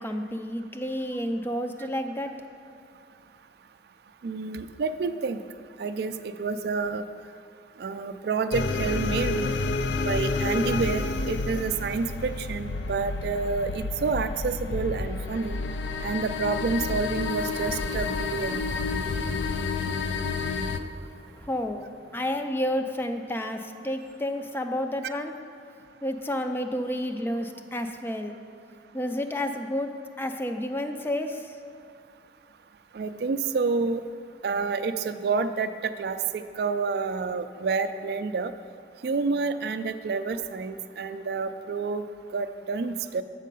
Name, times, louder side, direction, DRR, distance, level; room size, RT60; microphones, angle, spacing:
voice 1, 0.0-2.3 21.4-21.8 22.1-25.3 26.0-28.4 28.9-29.9 30.2-31.6, left 1 dB, 10° left, 6 dB, 0.4 m, -30 dB
voice 2, 4.2-5.4 5.8-7.0 7.8-9.5 10.0-15.6 16.0-18.6 25.0-25.1 32.9-34.0 34.4-35.7 36.0-38.5 39.0-42.1 42.3-43.2, right 4 dB, 60° right, 9 dB, 0.3 m, -29 dB
sound 1, 8.5-20.8, left 3 dB, 80° left, 0.4 m, -30 dB
sound 2, 17.3-23.5, equal, 30° left, 0.9 m, -49 dB
7.4 x 6.4 x 5.3 m, 2.5 s
head